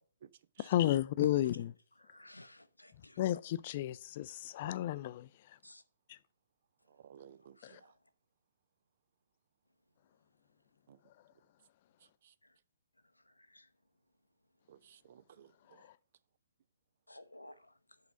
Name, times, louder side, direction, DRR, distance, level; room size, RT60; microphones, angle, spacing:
voice 1, 0.6-1.7 3.2-5.3 6.1-6.2 7.6-7.8, left 13 dB, 40° left, 0.4 m, -32 dB
voice 2, 2.0-3.2 5.6-5.8 7.6-7.9 13.5-13.6 17.1-17.7, left 1 dB, 85° left, 0.7 m, -55 dB
voice 3, 6.9-7.9 10.9-11.0 12.2-12.3 14.7-15.8, right 9 dB, 45° right, 0.4 m, -57 dB
8.1 x 4.0 x 5.7 m
figure-of-eight pair, 130°, 0 cm